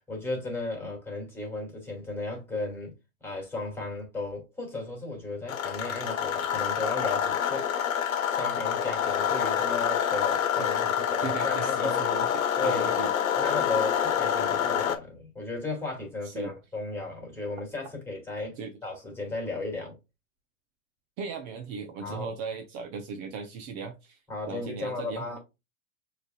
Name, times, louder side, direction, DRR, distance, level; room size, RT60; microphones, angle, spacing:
voice 1, 0.0-2.9 3.2-7.7 8.3-12.0 12.6-13.0 13.4-19.9 22.0-22.3 24.3-25.4, left 3 dB, 5° left, 2.6 m, -35 dB
sound 1, 5.5-15.0, left 9 dB, 85° left, 1.0 m, -27 dB
voice 2, 10.6-10.9 11.2-13.1 16.2-16.5 18.6-18.7 21.2-24.2 24.5-25.4, right 5 dB, 45° right, 0.8 m, -38 dB
6.3 x 3.4 x 2.2 m
hypercardioid pair, 115°, 40 cm